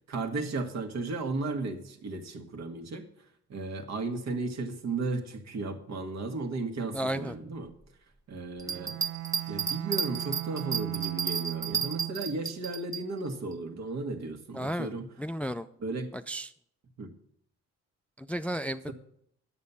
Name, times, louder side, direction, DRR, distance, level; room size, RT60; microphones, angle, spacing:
voice 1, 0.1-3.1 3.5-7.7 8.3-9.0 9.5-15.1 15.8-16.1 17.0-17.1 18.8-18.9, right 3 dB, 60° right, 6 dB, 1.6 m, -35 dB
voice 2, 6.9-7.3 14.5-14.9 15.2-15.7 16.3-16.5 18.2-18.9, equal, 5° left, 10 dB, 0.4 m, -33 dB
Bell, 8.6-13.0 13.5-13.6, right 6 dB, 10° right, 0.8 m, -32 dB
Bowed string instrument, 8.6-12.5, right 15 dB, 85° right, 0.5 m, -38 dB
9.7 x 7.3 x 7.0 m, 0.69 s
cardioid pair, 90°, 30 cm